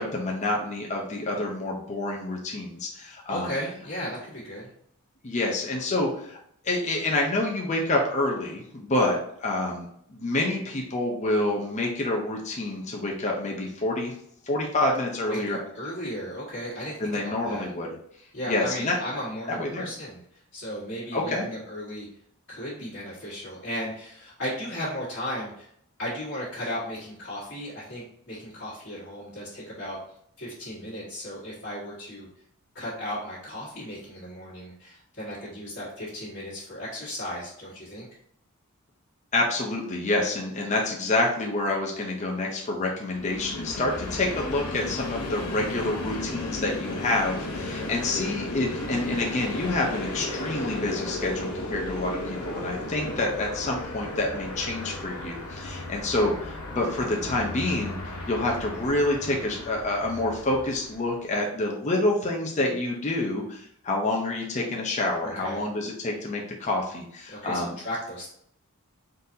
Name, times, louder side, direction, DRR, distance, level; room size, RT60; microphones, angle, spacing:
voice 1, 0.0-3.5 5.2-6.4 6.6-14.1 14.4-15.6 17.0-17.9 18.5-19.0 19.5-19.9 21.1-21.4 39.3-58.0 58.3-67.8, left 2 dB, 30° left, -1 dB, 0.6 m, -28 dB
voice 2, 3.3-4.7 15.3-17.7 18.3-22.1 22.5-25.7 26.0-30.0 30.4-32.3 32.7-38.1 65.2-65.7 67.3-68.3, equal, 50° left, -10 dB, 1.5 m, -35 dB
Train, 43.1-61.2, left 2 dB, 80° left, 1.0 m, -35 dB
4.0 x 4.0 x 2.7 m, 0.69 s
head